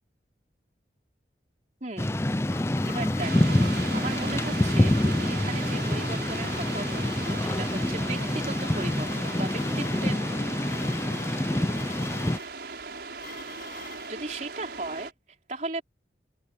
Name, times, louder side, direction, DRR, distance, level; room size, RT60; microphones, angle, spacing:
voice 1, 1.8-2.2 2.9-10.2 13.8-15.1 15.5-15.8, right 2 dB, 45° right, 3.8 m, -37 dB
sound 1, 2.0-14.1, left 5 dB, 50° left, 1.9 m, -46 dB
Thunder / Rain, 2.0-12.4, left 1 dB, 15° left, 0.5 m, -26 dB
sound 2, 3.2-15.1, right 4 dB, 65° right, 5.6 m, -38 dB
open air
head